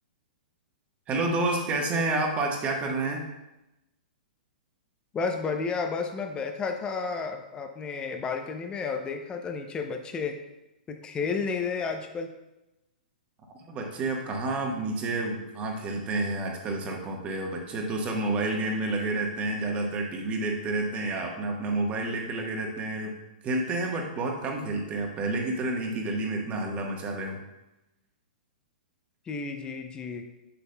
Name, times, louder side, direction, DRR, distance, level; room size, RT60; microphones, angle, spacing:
voice 1, 1.1-3.3 13.7-23.1 23.4-27.4, right 2 dB, 25° right, 1 dB, 1.3 m, -29 dB
voice 2, 5.1-10.3 10.9-12.3 29.3-30.3, left 5 dB, 20° left, 5 dB, 0.6 m, -32 dB
7.0 x 6.8 x 2.3 m, 0.96 s
hypercardioid pair, 125°, 5 cm